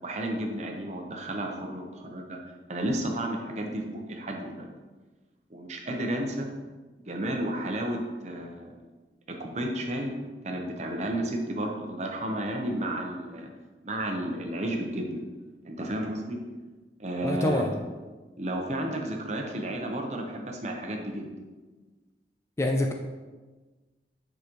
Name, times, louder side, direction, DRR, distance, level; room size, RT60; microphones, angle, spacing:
voice 1, 0.0-2.4 2.7-4.6 5.5-6.5 7.1-8.7 9.3-10.1 10.4-13.5 13.8-15.2 15.6-16.4 17.0-17.7 18.4-21.3, right 1 dB, 40° right, 2 dB, 0.8 m, -32 dB
voice 2, 17.2-17.8 22.6-22.9, left 1 dB, 15° left, 3 dB, 0.3 m, -26 dB
7.4 x 5.0 x 3.0 m, 1.3 s
head